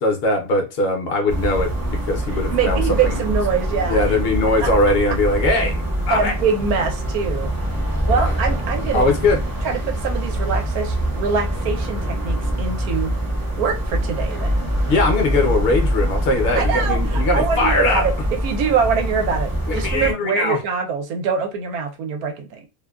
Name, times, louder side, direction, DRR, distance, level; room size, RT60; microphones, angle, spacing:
voice 1, 0.0-3.2 3.9-5.8 6.1-6.3 8.9-9.4 14.9-18.0 19.7-20.6, left 2 dB, 50° left, 0.8 m, -20 dB
sound 1, 1.3-20.1, equal, 20° right, 0.6 m, -24 dB
voice 2, 2.5-4.2 4.6-4.7 6.1-7.5 8.1-9.1 9.6-13.1 13.6-14.7 16.5-22.6, right 6 dB, 90° right, 1.2 m, -24 dB
2.7 x 2.2 x 2.3 m
omnidirectional pair, 1.5 m